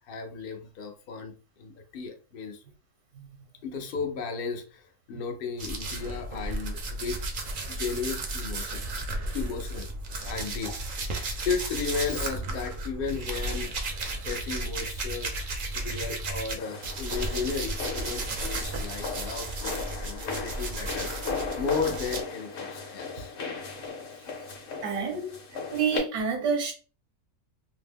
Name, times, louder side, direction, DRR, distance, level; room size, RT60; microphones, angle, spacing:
voice 1, 0.1-2.6 3.6-7.2 7.7-8.8 9.3-9.9 10.2-11.0 11.4-13.7 14.2-15.3 15.7-21.3 21.6-23.3, left 5 dB, 80° left, 0.5 m, -34 dB
sound 1, 5.6-16.5 16.8-22.2, right 2 dB, 60° right, 0.5 m, -34 dB
sound 2, 16.6-26.0, left 5 dB, 55° left, 0.9 m, -37 dB
voice 2, 24.8-25.4 25.7-26.7, right 6 dB, 80° right, 1.2 m, -28 dB
2.7 x 2.0 x 3.4 m
omnidirectional pair, 1.6 m